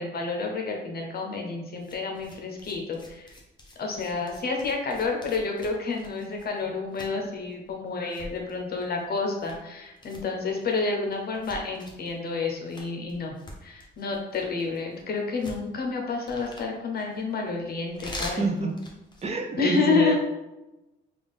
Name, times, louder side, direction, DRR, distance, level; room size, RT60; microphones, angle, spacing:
voice 1, 0.0-3.3 3.8-13.4 13.6-18.7 19.6-20.2, left 4 dB, 50° left, 1 dB, 0.8 m, -29 dB
sound 1, 1.7-19.4, left 1 dB, 20° left, 0.8 m, -45 dB
voice 2, 18.2-18.7 19.2-20.2, right 3 dB, 30° right, 2 dB, 0.6 m, -27 dB
3.5 x 2.4 x 3.5 m, 0.98 s
cardioid pair, 90°, 20 cm